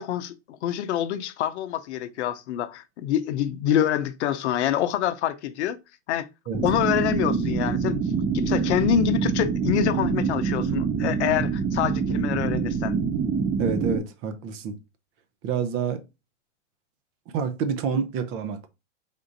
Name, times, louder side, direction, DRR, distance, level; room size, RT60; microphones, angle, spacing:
voice 1, 0.0-5.8 6.1-6.3 6.6-8.0 8.3-13.0, left 11 dB, 70° left, 0.6 m, -26 dB
sound 1, 6.5-14.0, right 5 dB, 15° right, 0.3 m, -25 dB
voice 2, 13.6-14.8 15.4-16.0 17.3-18.7, right 6 dB, 40° right, 0.7 m, -28 dB
3.6 x 2.5 x 3.8 m
hypercardioid pair, 110°, 36 cm